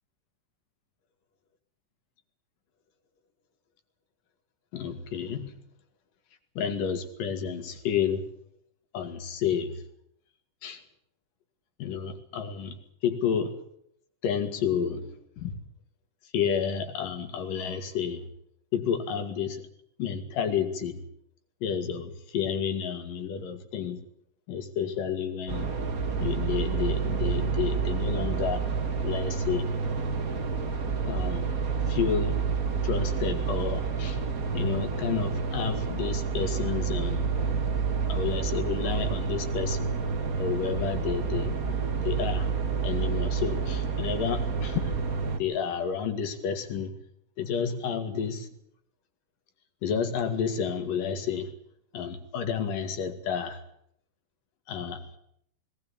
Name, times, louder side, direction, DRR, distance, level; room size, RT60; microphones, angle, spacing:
voice 1, 4.7-5.6 6.6-8.2 8.9-9.7 10.6-10.8 11.8-13.6 14.2-15.5 16.3-18.2 18.7-19.6 20.0-21.0 21.6-24.0 24.5-25.7 26.2-28.6 29.0-29.7 31.1-31.5 31.9-32.5 32.8-34.2 34.5-37.3 38.1-39.9 40.4-42.5 42.8-45.0 45.3-46.9 47.4-48.5 49.8-51.5 51.9-53.6 54.7-55.2, left 7 dB, 75° left, 8 dB, 3.7 m, -30 dB
sound 1, 25.5-45.4, right 5 dB, 40° right, 1.3 m, -29 dB
19.0 x 19.0 x 8.8 m, 0.71 s
omnidirectional pair, 3.9 m